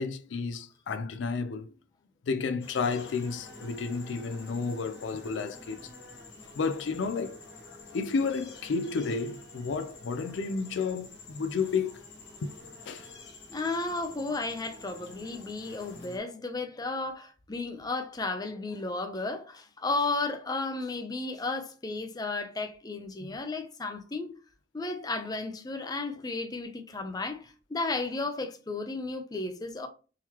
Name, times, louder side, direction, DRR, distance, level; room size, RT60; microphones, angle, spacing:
voice 1, 0.0-1.7 2.2-5.9 6.5-7.4 7.7-12.0 12.4-13.1 23.2-23.3, left 4 dB, 85° left, 0.4 m, -32 dB
sound 1, 2.6-16.2, left 3 dB, 65° left, 1.2 m, -48 dB
voice 2, 13.5-24.3 24.7-29.9, left 3 dB, 20° left, 0.5 m, -33 dB
3.8 x 2.9 x 2.9 m
head